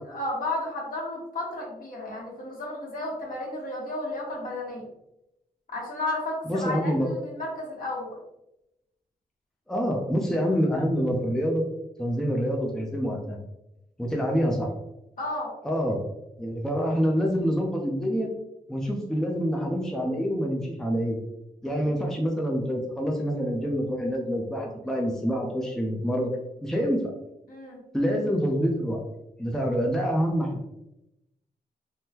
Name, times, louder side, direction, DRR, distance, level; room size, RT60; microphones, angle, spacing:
voice 1, 0.1-4.8 5.7-8.2 15.2-15.5 21.7-21.9 27.5-27.8, left 2 dB, 60° left, -3 dB, 1.3 m, -33 dB
voice 2, 6.5-7.1 9.7-11.6 12.0-13.4 14.0-14.7 15.6-16.0 16.4-18.3 18.7-21.2 21.6-26.3 26.6-27.1 27.9-29.0 29.4-30.6, equal, 5° left, -1 dB, 0.6 m, -26 dB
3.5 x 2.2 x 2.8 m, 0.89 s
cardioid pair, 60°, 16 cm